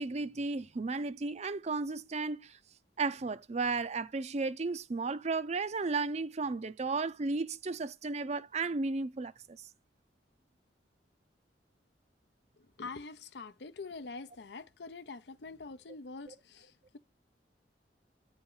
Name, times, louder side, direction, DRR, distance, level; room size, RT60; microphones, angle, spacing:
voice 1, 0.0-2.6 3.0-9.6 16.3-16.4, right 3 dB, 40° right, 0.5 m, -34 dB
voice 2, 12.6-17.0, left 4 dB, 70° left, 0.6 m, -45 dB
9.6 x 4.3 x 5.5 m
head